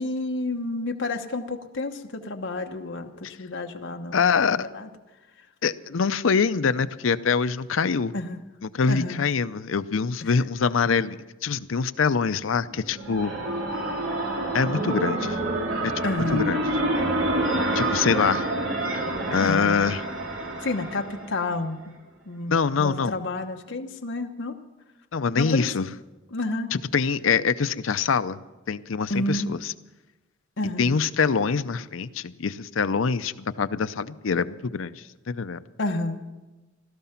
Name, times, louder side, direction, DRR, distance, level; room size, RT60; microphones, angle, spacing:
voice 1, 0.0-4.9 8.1-8.4 8.9-9.2 16.0-16.5 19.4-19.8 20.6-21.8 22.3-24.6 25.3-25.7 26.3-26.7 29.1-29.5 30.6-30.9 35.8-36.2, left 2 dB, 65° left, 3 dB, 1.1 m, -30 dB
voice 2, 4.1-4.7 5.6-8.1 8.7-13.3 14.5-15.4 15.8-16.7 17.7-18.5 19.3-20.0 22.5-23.2 25.1-25.9 26.7-28.4 28.7-29.7 30.8-35.6, left 5 dB, 85° left, 13 dB, 0.6 m, -24 dB
sound 1, 12.7-21.5, right 1 dB, 80° right, 3.0 m, -27 dB
16.5 x 13.0 x 5.8 m, 1.1 s
head